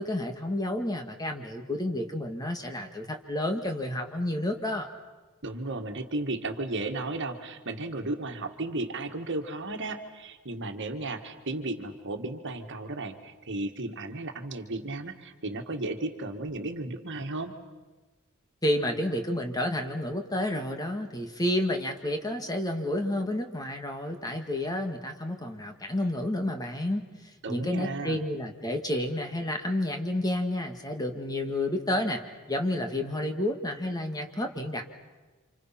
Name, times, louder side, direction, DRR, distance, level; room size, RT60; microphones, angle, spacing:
voice 1, 0.0-4.9 18.6-27.1 27.5-32.2 32.5-34.8, left 1 dB, 20° left, 5 dB, 1.9 m, -30 dB
voice 2, 5.4-17.5 27.4-28.2, right 2 dB, 55° right, 5 dB, 1.8 m, -34 dB
29.5 x 27.0 x 5.9 m, 1.3 s
head